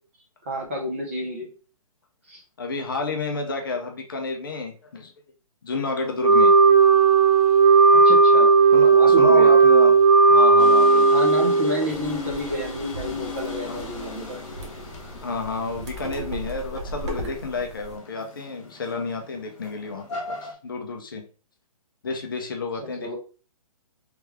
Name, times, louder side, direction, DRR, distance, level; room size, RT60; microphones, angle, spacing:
voice 1, 0.4-1.5 2.3-2.4 7.9-8.5 8.9-9.5 11.1-14.4 23.0-23.2, equal, 20° right, -2 dB, 0.6 m, -30 dB
voice 2, 2.6-5.1 5.6-6.5 8.7-10.0 10.3-11.1 13.6-13.8 15.2-21.2 22.0-23.2, left 4 dB, 35° left, 3 dB, 0.6 m, -30 dB
Wind instrument woodwind instrument, 6.2-11.9, right 4 dB, 85° right, 0.9 m, -15 dB
sound 1, 10.6-20.5, left 4 dB, 55° left, 1.5 m, -38 dB
sound 2, 11.9-18.0, right 2 dB, 50° right, 0.9 m, -38 dB
3.3 x 3.2 x 3.4 m, 0.37 s
hypercardioid pair, 180°, 19 cm